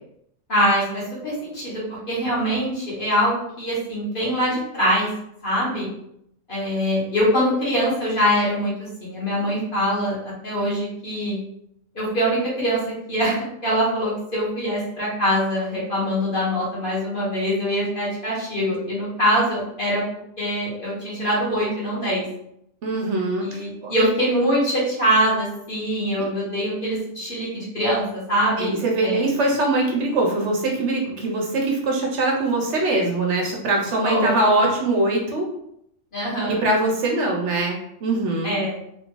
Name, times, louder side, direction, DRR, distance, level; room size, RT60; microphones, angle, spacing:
voice 1, 0.5-5.1 5.4-5.9 6.5-11.4 11.9-12.8 13.1-20.0 20.4-22.2 23.4-28.7 29.0-29.2 34.0-34.4 36.1-36.6 38.4-38.8, equal, 40° left, -7 dB, 1.5 m, -23 dB
voice 2, 22.8-24.1 28.6-35.5 36.5-38.6, right 2 dB, 65° right, 0 dB, 0.9 m, -22 dB
3.3 x 2.7 x 3.0 m, 0.75 s
omnidirectional pair, 1.4 m